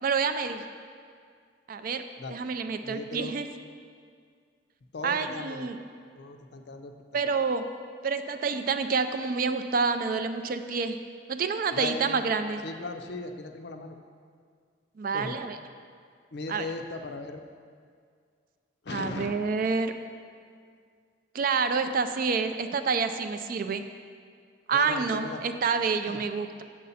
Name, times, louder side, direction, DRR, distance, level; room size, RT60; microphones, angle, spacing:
voice 1, 0.0-0.6 1.7-2.0 2.3-3.5 5.0-5.8 7.1-7.6 8.0-11.0 11.3-12.6 15.0-15.6 16.5-16.7 18.9-19.9 21.3-23.9 24.7-26.6, right 5 dB, 45° right, 9 dB, 0.3 m, -28 dB
voice 2, 2.8-3.3 4.9-5.7 6.1-6.9 7.2-7.4 11.7-12.2 12.6-14.0 15.1-15.5 16.3-17.4 18.8-19.3 24.7-25.4 26.1-26.2, left 3 dB, 55° left, 6 dB, 0.5 m, -37 dB
7.4 x 6.9 x 4.1 m, 2.1 s
head